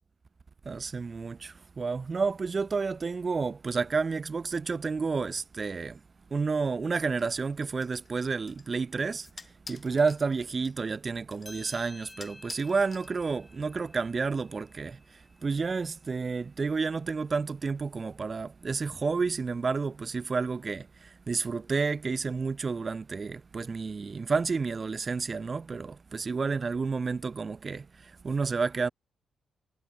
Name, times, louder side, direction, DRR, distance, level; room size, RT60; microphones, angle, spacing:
voice 1, 0.6-6.0 6.3-9.3 9.7-15.0 15.4-28.9, right 4 dB, 35° right, 0.8 m, -30 dB
sound 1, 7.2-13.6, left 4 dB, 30° left, 6.0 m, -51 dB
sound 2, 11.4-16.3, left 1 dB, 10° left, 6.8 m, -52 dB
cardioid pair, 105°, 0 cm